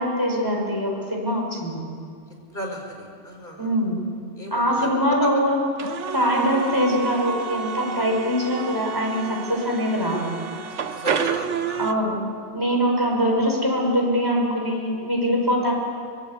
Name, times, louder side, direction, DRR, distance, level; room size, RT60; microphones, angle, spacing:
voice 1, 0.0-1.8 3.6-4.0 4.5-5.6 6.1-10.3 11.8-12.2 12.5-15.7, equal, 20° right, -1 dB, 5.4 m, -23 dB
voice 2, 2.5-3.7 4.4-4.9 5.2-5.5 10.9-11.8, equal, 40° left, 2 dB, 4.6 m, -34 dB
sound 1, 5.8-11.9, right 7 dB, 75° right, 1.3 m, -30 dB
25.0 x 21.0 x 8.6 m, 2.2 s
omnidirectional pair, 1.2 m